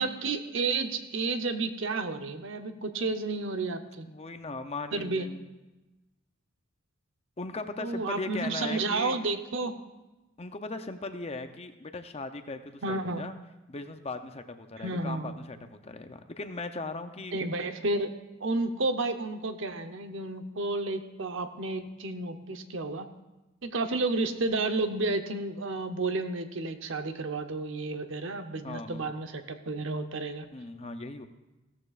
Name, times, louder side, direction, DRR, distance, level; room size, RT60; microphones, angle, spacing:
voice 1, 0.0-4.1 4.9-5.3 7.8-9.7 12.8-13.2 14.8-15.3 17.3-18.1 18.4-23.1 23.6-30.5, right 3 dB, 65° right, 7 dB, 0.9 m, -31 dB
voice 2, 4.1-5.5 7.4-9.2 10.4-13.3 13.7-15.6 15.8-17.4 28.6-29.1 30.5-31.3, left 3 dB, 30° left, 8 dB, 0.6 m, -38 dB
16.0 x 13.5 x 2.5 m, 1.1 s
head